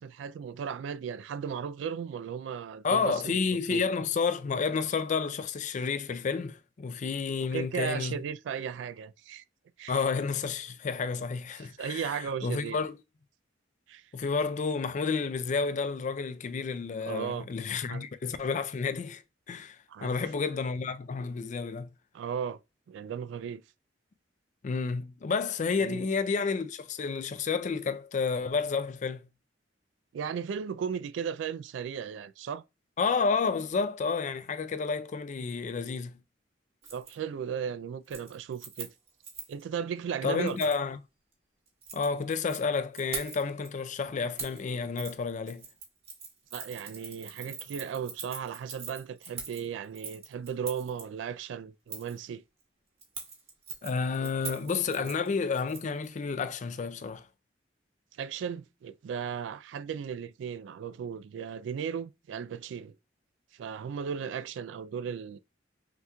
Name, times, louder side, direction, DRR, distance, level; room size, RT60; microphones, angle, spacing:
voice 1, 0.0-3.4 3.7-3.8 7.5-9.4 9.8-10.0 11.6-12.8 13.9-14.0 17.1-17.5 17.9-18.0 19.9-20.2 22.1-22.6 22.9-23.6 25.8-26.1 30.1-32.6 36.9-38.9 39.5-40.6 46.5-52.4 54.2-55.1 58.2-62.9 63.5-65.4, right 7 dB, 85° right, 0.3 m, -36 dB
voice 2, 2.8-8.2 9.9-12.9 14.1-19.2 19.5-21.9 24.6-29.3 33.0-36.2 40.2-41.0 41.9-45.7 53.8-57.3, left 5 dB, 45° left, 0.4 m, -30 dB
Keys jangling, 36.8-37.1 37.5-37.8 38.0-39.6 40.5-40.8 41.7-42.6 42.9-43.7 44.4-44.6 45.0-45.1 45.5-51.0 51.9-52.2 53.0-56.1 56.3-56.4, right 5 dB, 35° right, 1.2 m, -42 dB
5.7 x 2.9 x 2.2 m
head